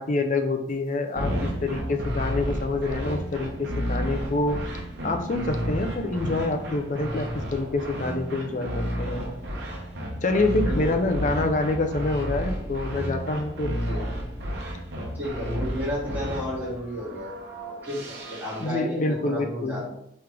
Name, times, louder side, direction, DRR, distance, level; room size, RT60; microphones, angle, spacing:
voice 1, 0.0-4.6 5.0-9.3 10.2-13.8 18.6-19.8, left 2 dB, 40° left, 6 dB, 0.5 m, -27 dB
sound 1, 0.7-0.8 1.2-18.7, equal, 55° right, 1.0 m, -32 dB
voice 2, 8.4-8.8 10.7-11.4 13.8-14.0 15.1-17.4 17.8-19.9, equal, 10° right, -9 dB, 1.9 m, -33 dB
3.7 x 3.2 x 4.5 m, 0.73 s
head